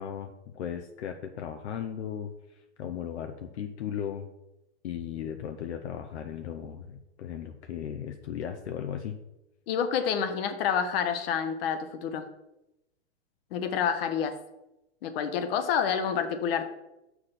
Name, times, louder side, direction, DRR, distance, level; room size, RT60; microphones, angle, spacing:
voice 1, 0.0-4.3 4.8-9.2, left 8 dB, 75° left, 6 dB, 0.8 m, -36 dB
voice 2, 9.7-12.3 13.5-14.4 15.0-16.7, left 7 dB, 60° left, 9 dB, 1.1 m, -28 dB
6.5 x 4.8 x 5.7 m, 0.91 s
hypercardioid pair, 130°, 34 cm